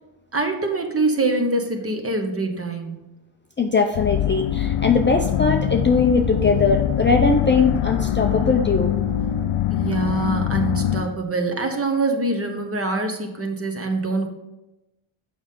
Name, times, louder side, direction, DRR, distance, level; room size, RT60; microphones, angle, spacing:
voice 1, 0.3-3.1 9.7-14.3, right 2 dB, 25° right, 4 dB, 1.1 m, -24 dB
voice 2, 3.6-9.0, left 4 dB, 25° left, 3 dB, 0.5 m, -20 dB
sound 1, 3.9-11.0, left 10 dB, 80° left, 0.7 m, -23 dB
7.1 x 5.6 x 3.7 m, 0.97 s
cardioid pair, 95°, 50 cm